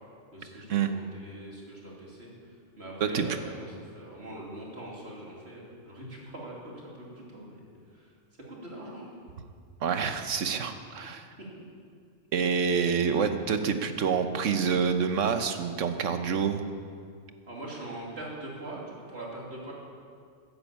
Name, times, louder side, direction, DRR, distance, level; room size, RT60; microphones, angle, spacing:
voice 1, 0.3-2.3 2.8-3.7 3.9-7.7 7.9-8.1 8.5-9.1 11.4-11.5 17.5-19.7, right 1 dB, 60° right, -4 dB, 3.2 m, -42 dB
voice 2, 9.8-11.3 12.3-16.6, right 6 dB, 80° right, 8 dB, 1.3 m, -27 dB
13.5 x 10.5 x 8.6 m, 2.2 s
omnidirectional pair, 1.3 m